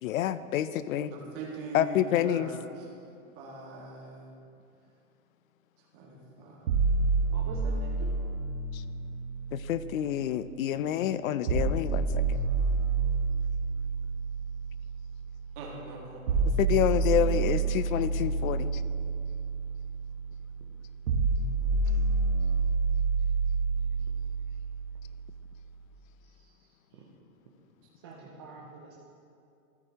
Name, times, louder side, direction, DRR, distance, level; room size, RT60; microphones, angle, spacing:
voice 1, 0.0-1.1 1.7-2.5 8.7-8.8 9.5-12.4 16.6-18.8, left 11 dB, 70° left, 14 dB, 0.5 m, -28 dB
voice 2, 1.1-2.7 3.4-4.3 5.9-6.9 15.6-16.4 28.1-28.5, right 3 dB, 40° right, -2 dB, 2.0 m, -42 dB
sound 1, 6.7-10.7 11.5-25.5, right 4 dB, 80° right, 1.2 m, -29 dB
voice 3, 7.3-8.1 28.0-28.9, right 4 dB, 20° right, -3 dB, 0.3 m, -46 dB
13.5 x 8.7 x 2.8 m, 2.6 s
hypercardioid pair, 150°, 42 cm